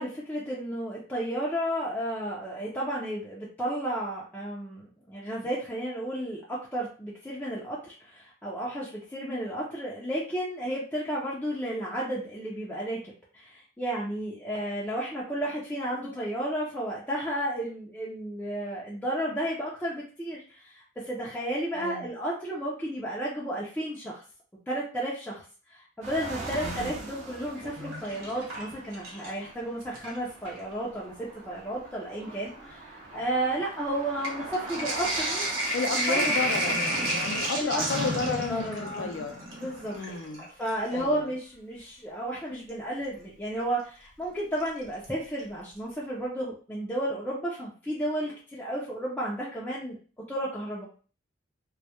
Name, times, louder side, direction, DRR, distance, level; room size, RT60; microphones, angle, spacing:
voice 1, 0.0-13.0 13.3-24.2 24.7-25.4 25.7-35.5 35.9-36.3 37.5-39.2 39.5-40.0 40.4-50.0 50.3-50.8, right 1 dB, 10° left, -6 dB, 0.4 m, -33 dB
voice 2, 21.7-22.1 26.6-27.0 35.7-39.4 39.9-40.5 40.9-41.3, left 4 dB, 75° left, 6 dB, 0.4 m, -32 dB
sound 1, 26.0-39.9, right 2 dB, 40° right, 0.6 m, -43 dB
Sink (filling or washing), 27.4-29.5 29.8-30.6 31.4-31.5 31.8-40.9 42.7-42.8 44.6-45.0 45.4-45.5 45.7-45.8, right 1 dB, 85° right, 0.9 m, -32 dB
2.2 x 2.0 x 2.8 m, 0.38 s
head